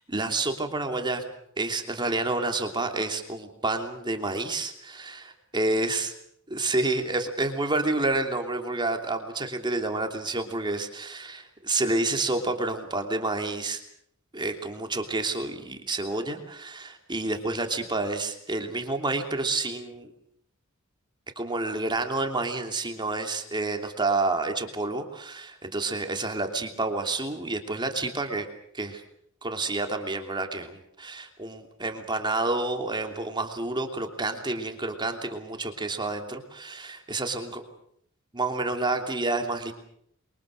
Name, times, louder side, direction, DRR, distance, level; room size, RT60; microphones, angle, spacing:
voice 1, 0.1-1.2 1.6-6.1 6.5-13.8 14.3-20.1 21.4-28.5 28.7-29.0 29.4-37.6 38.3-39.7, right 2 dB, 20° right, 4 dB, 3.0 m, -29 dB
28.0 x 24.0 x 6.6 m, 0.68 s
head